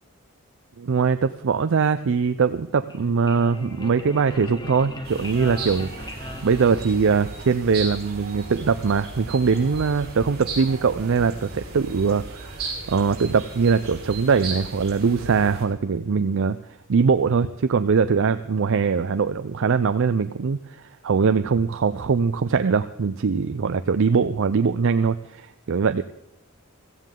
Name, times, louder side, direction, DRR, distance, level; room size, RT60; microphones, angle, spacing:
voice 1, 0.8-16.6 16.9-26.0, right 5 dB, 65° right, 11 dB, 0.5 m, -22 dB
sound 1, 2.7-7.4, left 1 dB, 20° left, 1.5 m, -39 dB
sound 2, 5.0-15.7, right 3 dB, 50° right, 4.6 m, -36 dB
16.5 x 15.0 x 3.8 m, 0.86 s
head